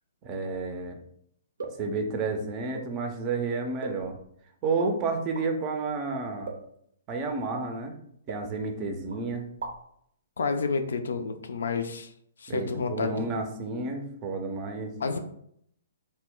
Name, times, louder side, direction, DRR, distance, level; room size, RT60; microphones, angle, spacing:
voice 1, 0.2-1.0 1.8-4.2 4.6-6.5 7.1-8.0 8.3-9.5 12.5-15.2, right 3 dB, 30° right, 4 dB, 0.5 m, -31 dB
sound 1, 1.6-1.9 2.7-3.0 3.8-4.3 4.7-4.9 5.3-5.5 6.5-6.8 7.5-7.7 8.3-8.8 9.1-9.2 9.5-10.0, right 4 dB, 75° right, 0.6 m, -39 dB
voice 2, 10.4-12.1 12.4-13.3 15.0-15.2, left 4 dB, 70° left, 7 dB, 0.3 m, -30 dB
2.1 x 2.0 x 3.6 m, 0.69 s
hypercardioid pair, 125°, 0 cm